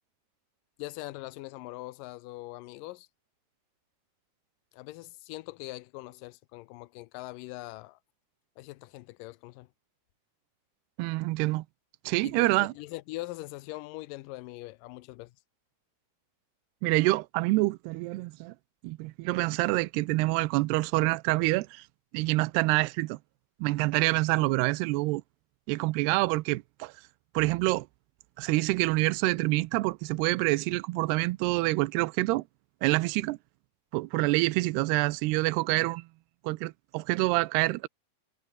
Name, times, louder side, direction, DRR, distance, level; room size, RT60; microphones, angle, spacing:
voice 1, 0.8-3.1 4.7-8.0 8.6-9.7 12.2-15.3, left 19 dB, 85° left, 1.9 m, -42 dB
voice 2, 11.0-11.7 12.1-12.7 16.8-18.5 18.8-21.9 22.1-23.2 23.6-25.2 25.7-26.9 27.3-27.9 28.4-32.4 32.8-33.4 33.9-36.1 36.4-37.9, right 21 dB, 85° right, 2.7 m, -26 dB
omnidirectional pair, 4.7 m